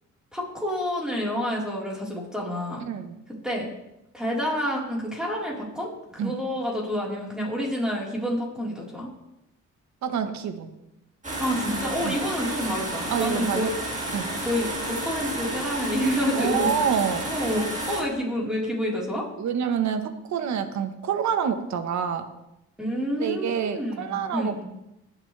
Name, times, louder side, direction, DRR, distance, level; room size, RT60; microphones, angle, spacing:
voice 1, 0.3-2.8 3.3-3.7 4.1-9.1 11.4-13.7 14.2-16.7 17.2-19.3 22.8-24.6, equal, ahead, -4 dB, 4.3 m, -28 dB
voice 2, 2.8-3.2 6.2-6.3 10.0-10.7 12.0-12.2 13.1-13.7 14.1-14.3 16.3-17.2 19.4-22.2 23.2-24.6, right 7 dB, 65° right, 8 dB, 1.4 m, -27 dB
sound 1, 11.2-18.0, right 1 dB, 25° right, 3.7 m, -31 dB
21.5 x 7.3 x 3.4 m, 0.87 s
cardioid pair, 90°, 30 cm